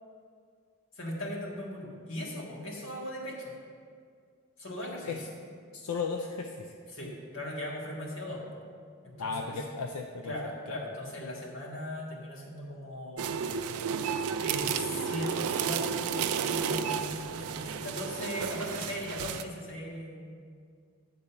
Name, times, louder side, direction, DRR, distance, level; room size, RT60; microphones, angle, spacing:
voice 1, 0.9-3.5 4.6-5.2 6.9-8.4 9.0-9.6 10.2-13.6 14.4-20.3, left 1 dB, 60° left, -3 dB, 1.7 m, -39 dB
voice 2, 5.7-6.7 9.2-10.8, left 4 dB, 80° left, 3 dB, 0.5 m, -35 dB
sound 1, 13.2-19.4, right 7 dB, 85° right, 0.4 m, -32 dB
10.0 x 4.0 x 6.7 m, 2.2 s
head